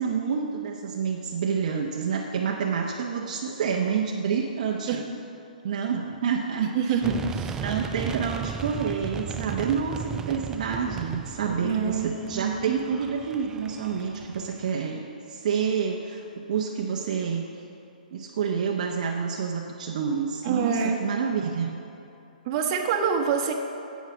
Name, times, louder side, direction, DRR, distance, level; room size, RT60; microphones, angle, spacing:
voice 1, 0.0-5.0 5.6-6.9 7.6-15.0 15.3-17.4 18.1-21.8, right 6 dB, 55° right, 0 dB, 0.8 m, -28 dB
voice 2, 6.6-7.6 11.6-12.1 12.3-12.8 20.4-21.0 22.4-23.5, right 6 dB, 35° right, 1 dB, 1.2 m, -26 dB
sound 1, 7.0-14.7, right 7 dB, 10° right, 0.3 m, -36 dB
9.7 x 8.4 x 6.3 m, 2.9 s
hypercardioid pair, 140°, 5 cm